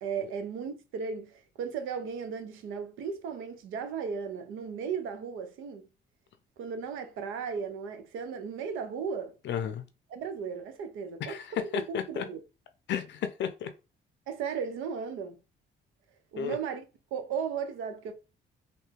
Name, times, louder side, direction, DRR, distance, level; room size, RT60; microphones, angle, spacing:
voice 1, 0.0-5.9 6.6-9.4 10.1-11.4 11.7-12.4 14.3-15.4 16.3-16.8 17.1-18.1, right 6 dB, 90° right, 0.6 m, -35 dB
voice 2, 9.4-9.8 11.2-12.3 12.9-13.7 16.4-16.6, left 8 dB, 65° left, 0.5 m, -33 dB
3.2 x 2.6 x 3.3 m
cardioid pair, 90°, 20 cm